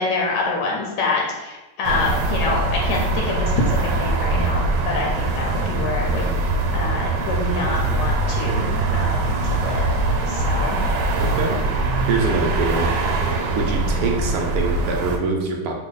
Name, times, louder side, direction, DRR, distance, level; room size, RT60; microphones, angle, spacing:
voice 1, 0.0-10.8, left 3 dB, 80° left, -1 dB, 1.2 m, -26 dB
sound 1, 1.8-15.2, right 2 dB, 90° right, 1.2 m, -22 dB
voice 2, 11.2-11.6 12.1-12.9 13.6-15.7, right 4 dB, 70° right, 1 dB, 0.9 m, -24 dB
3.1 x 2.1 x 3.8 m, 1.1 s
omnidirectional pair, 1.8 m